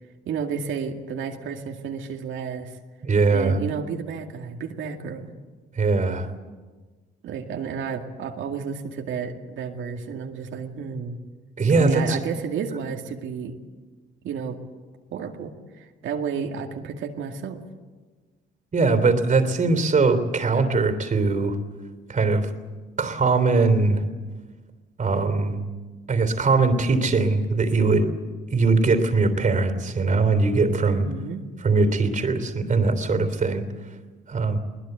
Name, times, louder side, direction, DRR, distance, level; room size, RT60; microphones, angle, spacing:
voice 1, 0.2-2.8 3.3-5.3 7.2-11.2 11.8-13.5 14.2-14.6 15.1-17.6 30.9-31.4, right 6 dB, 75° right, 3 dB, 2.2 m, -31 dB
voice 2, 3.0-3.6 5.8-6.3 11.6-12.2 18.7-21.6 22.1-22.5 23.0-24.0 25.0-25.6 26.1-28.1 28.5-31.1 31.6-33.6 34.3-34.6, right 3 dB, 40° right, 9 dB, 3.3 m, -21 dB
22.0 x 20.0 x 8.1 m, 1.4 s
cardioid pair, 90°, 20 cm